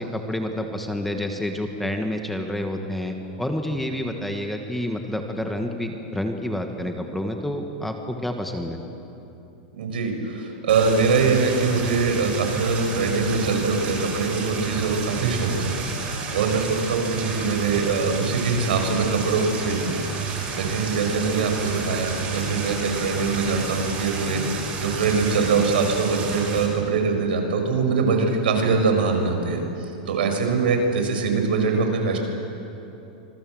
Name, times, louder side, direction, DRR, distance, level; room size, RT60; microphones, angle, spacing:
voice 1, 0.0-8.8, left 1 dB, 5° left, 4 dB, 1.4 m, -29 dB
voice 2, 9.7-32.2, right 4 dB, 85° right, 5 dB, 5.4 m, -23 dB
sound 1, 10.7-26.7, right 4 dB, 25° right, 4.6 m, -30 dB
26.0 x 21.5 x 7.8 m, 2.9 s
supercardioid pair, 165°, 5 cm